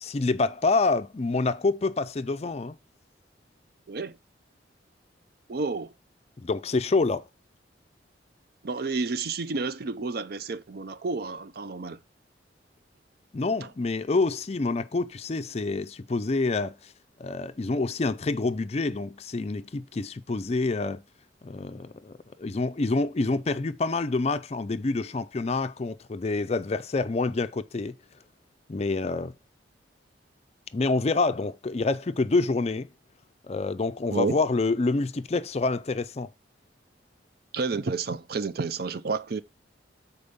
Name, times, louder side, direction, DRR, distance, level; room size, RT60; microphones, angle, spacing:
voice 1, 0.0-2.8 6.4-7.3 13.3-16.9 17.2-21.0 21.4-27.9 28.7-29.3 30.7-32.9 33.5-36.3, left 3 dB, 35° left, 0.4 m, -27 dB
voice 2, 5.5-5.9 8.6-12.0 13.6-13.7 34.1-34.4 37.5-39.4, right 4 dB, 55° right, 0.5 m, -30 dB
6.9 x 4.4 x 5.2 m
head